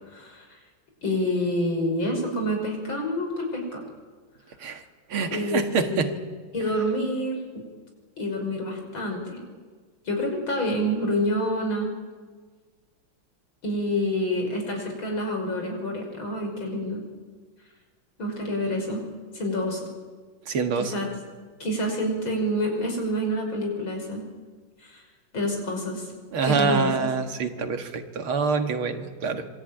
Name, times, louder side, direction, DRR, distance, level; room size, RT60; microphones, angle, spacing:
voice 1, 0.1-0.5 1.0-3.8 5.3-6.2 6.5-7.6 8.2-9.4 10.0-11.9 13.6-17.0 18.2-19.0 19.3-19.8 20.8-21.1 21.6-24.2 24.8-25.0 25.3-26.1 26.4-26.9, equal, 65° left, 2 dB, 6.5 m, -27 dB
voice 2, 5.1-6.1 20.5-20.9 26.3-29.5, right 5 dB, 75° right, 6 dB, 2.6 m, -26 dB
26.0 x 22.0 x 9.0 m, 1.5 s
omnidirectional pair, 2.3 m